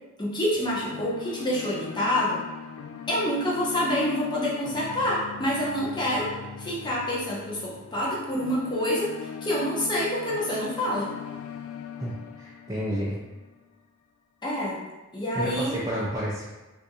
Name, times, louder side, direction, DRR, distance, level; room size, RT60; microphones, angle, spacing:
voice 1, 0.2-2.4 3.1-6.3 6.6-11.1 14.4-14.8 15.1-15.8, equal, 20° left, -6 dB, 0.7 m, -27 dB
sound 1, 0.5-13.7, left 7 dB, 80° left, 0.3 m, -40 dB
voice 2, 12.0-13.2 15.3-16.5, equal, 15° right, -8 dB, 0.4 m, -30 dB
3.4 x 2.5 x 2.8 m, 1.2 s
head